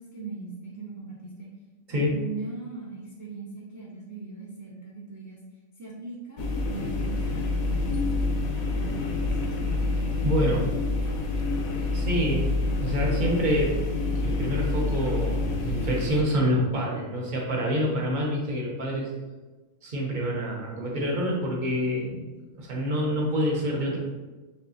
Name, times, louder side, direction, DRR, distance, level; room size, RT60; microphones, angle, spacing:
voice 1, 0.0-1.5 1.9-5.4 5.8-9.6, right 4 dB, 25° right, -6 dB, 0.4 m, -40 dB
sound 1, 6.4-16.2, left 3 dB, 80° left, 1.0 m, -27 dB
voice 2, 10.2-10.7 11.9-12.5 12.8-13.8 14.2-19.1 19.8-22.2 22.6-24.0, equal, 40° right, -2 dB, 0.8 m, -27 dB
5.4 x 2.4 x 2.7 m, 1.2 s
omnidirectional pair, 1.4 m